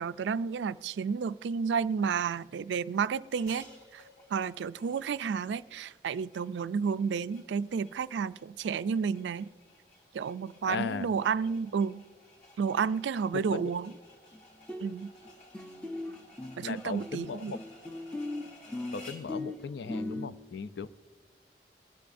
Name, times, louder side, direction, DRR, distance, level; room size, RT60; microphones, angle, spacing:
voice 1, 0.0-4.0 4.3-9.5 10.1-12.0 12.6-13.9 14.8-15.1 16.6-17.5, right 6 dB, 85° right, 0.3 m, -31 dB
sound 1, 3.3-19.4, left 2 dB, 40° left, 2.3 m, -56 dB
voice 2, 10.6-11.1 13.3-13.7 16.6-17.6 18.9-20.9, left 5 dB, 70° left, 0.4 m, -37 dB
sound 2, 14.3-14.4 14.7-15.3 15.5-20.3, left 2 dB, 5° left, 0.5 m, -38 dB
20.0 x 13.0 x 2.6 m
head